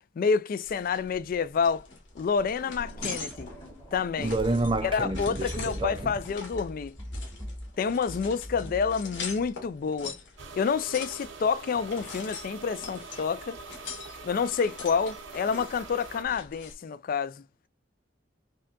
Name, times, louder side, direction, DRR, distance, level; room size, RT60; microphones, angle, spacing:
voice 1, 0.2-1.9 2.2-3.5 3.9-4.4 4.8-7.0 7.8-10.2 10.6-13.6 14.2-17.4, left 6 dB, 50° left, 0.3 m, -28 dB
sound 1, 0.6-16.7, left 4 dB, 70° left, 1.6 m, -43 dB
sound 2, 2.7-9.6, equal, 20° left, 1.1 m, -41 dB
voice 2, 4.2-6.0, right 2 dB, 25° right, 0.4 m, -28 dB
sound 3, 10.4-16.2, right 4 dB, 90° right, 0.8 m, -44 dB
5.3 x 2.2 x 2.4 m
head